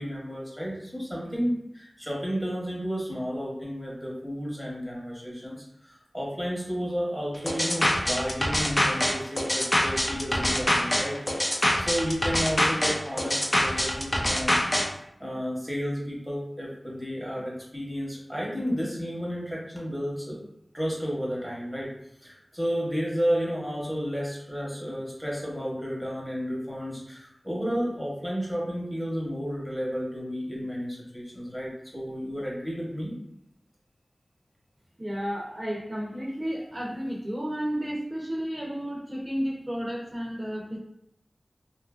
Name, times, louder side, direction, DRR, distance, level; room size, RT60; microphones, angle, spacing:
voice 1, 0.0-14.6 15.2-20.4 20.7-21.9 22.2-33.1, equal, 10° left, -5 dB, 1.0 m, -32 dB
sound 1, 7.5-14.9, left 1 dB, 30° left, 0.5 m, -25 dB
voice 2, 35.0-40.8, equal, 30° right, -4 dB, 0.6 m, -32 dB
2.7 x 2.5 x 2.4 m, 0.79 s
wide cardioid pair, 65°, 0 cm